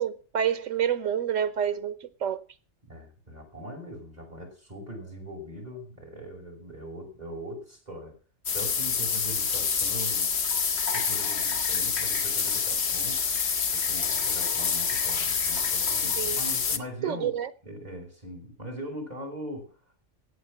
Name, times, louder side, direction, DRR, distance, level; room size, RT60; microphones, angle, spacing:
voice 1, 0.0-2.4 16.2-16.4 17.0-17.5, right 9 dB, 80° right, 1.3 m, -28 dB
voice 2, 2.8-8.2 8.5-10.3 10.9-19.8, equal, 30° right, 5.4 m, -41 dB
sound 1, 8.5-16.8, left 6 dB, 60° left, 1.3 m, -27 dB
17.0 x 8.1 x 6.0 m
omnidirectional pair, 1.3 m